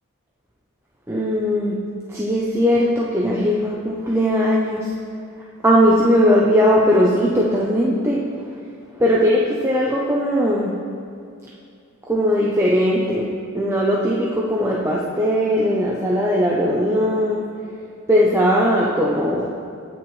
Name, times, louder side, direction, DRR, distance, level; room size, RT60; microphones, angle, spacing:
voice 1, 1.1-1.8 2.1-4.9 5.6-8.5 9.0-10.8 12.1-17.4 18.1-19.5, equal, 10° right, -5 dB, 0.8 m, -19 dB
18.5 x 6.1 x 3.3 m, 2.4 s
head